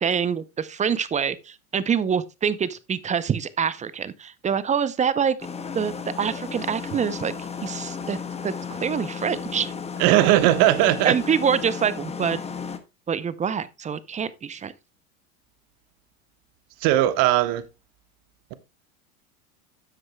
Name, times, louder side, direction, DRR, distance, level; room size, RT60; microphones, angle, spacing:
voice 1, 0.0-5.4 5.7-7.3 7.6-8.2 8.4-9.7 11.0-12.4 13.1-14.7, right 7 dB, 15° right, 0.6 m, -25 dB
sound 1, 5.4-12.8, left 6 dB, 15° left, 1.1 m, -34 dB
voice 2, 10.0-11.2 16.8-17.6, right 14 dB, 50° right, 1.3 m, -18 dB
12.5 x 7.8 x 2.2 m
hypercardioid pair, 105°, 42 cm